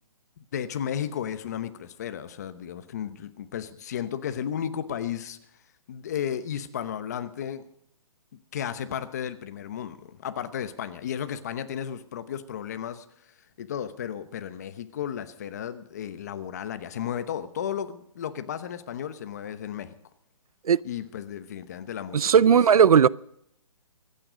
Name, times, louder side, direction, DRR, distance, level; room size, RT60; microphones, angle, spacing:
voice 1, 0.5-5.4 5.9-7.7 8.5-13.0 13.6-19.9 20.8-22.6, left 9 dB, 30° left, 0.9 m, -34 dB
voice 2, 22.1-23.1, right 7 dB, 85° right, 0.5 m, -17 dB
25.0 x 9.2 x 5.0 m
hypercardioid pair, 170°, 18 cm